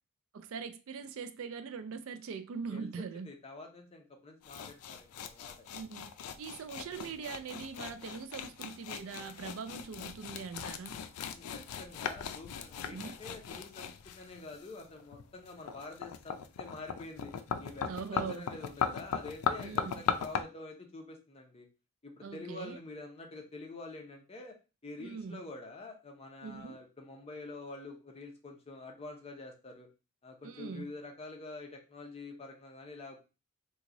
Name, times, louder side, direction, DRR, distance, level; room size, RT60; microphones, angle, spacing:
voice 1, 0.3-3.3 5.7-6.1 6.4-11.0 12.9-13.2 17.9-18.5 19.6-20.0 22.2-22.8 25.0-25.4 26.4-26.8 30.4-30.9, right 5 dB, 65° right, 0.4 m, -42 dB
voice 2, 3.1-5.5 11.3-17.3 17.6-21.7 22.0-24.5 24.8-29.9 30.2-33.2, left 3 dB, 25° left, 0.7 m, -47 dB
sound 1, 4.4-20.4, left 7 dB, 85° left, 0.4 m, -38 dB
3.1 x 2.3 x 3.8 m
head